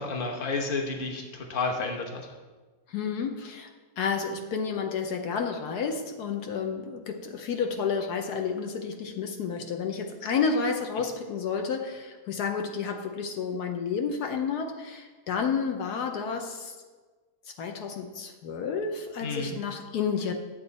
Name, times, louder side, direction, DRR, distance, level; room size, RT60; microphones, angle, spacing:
voice 1, 0.0-2.3 19.2-19.5, left 3 dB, 35° left, 2 dB, 1.2 m, -31 dB
voice 2, 2.9-3.7 4.0-16.7 17.6-20.3, left 6 dB, 75° left, 4 dB, 1.3 m, -30 dB
10.5 x 7.9 x 4.0 m, 1.3 s
omnidirectional pair, 1.7 m